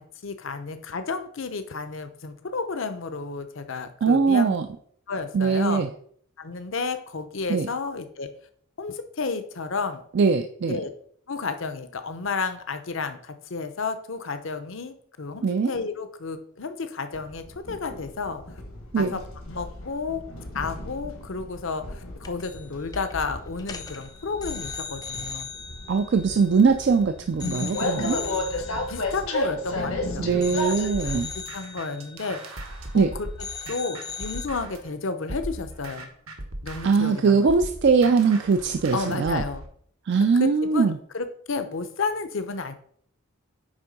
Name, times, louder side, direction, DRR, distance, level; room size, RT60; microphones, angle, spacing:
voice 1, 0.2-4.5 5.1-5.8 6.4-8.3 8.8-10.0 10.7-10.9 11.3-18.4 19.0-19.2 19.5-20.2 20.5-25.5 28.0-28.5 28.9-32.6 32.9-33.3 33.7-36.1 36.6-37.6 38.9-39.6 40.4-42.7, left 4 dB, 65° left, 9 dB, 0.7 m, -32 dB
voice 2, 4.0-4.7 5.3-5.9 7.5-7.7 10.2-10.8 15.4-15.7 18.9-19.2 25.9-28.2 30.2-31.3 32.9-33.1 36.8-39.4 40.1-40.9, right 5 dB, 55° right, 8 dB, 0.4 m, -21 dB
Train, 17.1-30.9, left 1 dB, 80° left, 1.4 m, -33 dB
sound 1, 22.2-22.7 22.9-23.2 23.6-27.0 27.4-30.0 30.4-33.1 33.4-34.5, left 6 dB, 20° left, 0.4 m, -39 dB
sound 2, 30.9-34.9 35.3-39.7, right 1 dB, 80° right, 1.2 m, -38 dB
8.9 x 3.6 x 5.3 m, 0.62 s
head